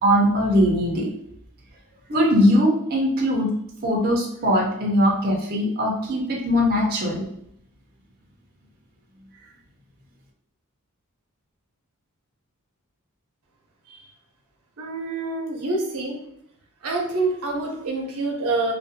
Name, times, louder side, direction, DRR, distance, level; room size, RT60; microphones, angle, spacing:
voice 1, 0.0-1.1 2.1-3.5 3.8-7.2, equal, 45° right, -2 dB, 0.6 m, -20 dB
voice 2, 14.8-16.2 16.8-18.7, right 3 dB, 85° right, 0 dB, 0.6 m, -26 dB
2.5 x 2.1 x 2.6 m, 0.73 s
head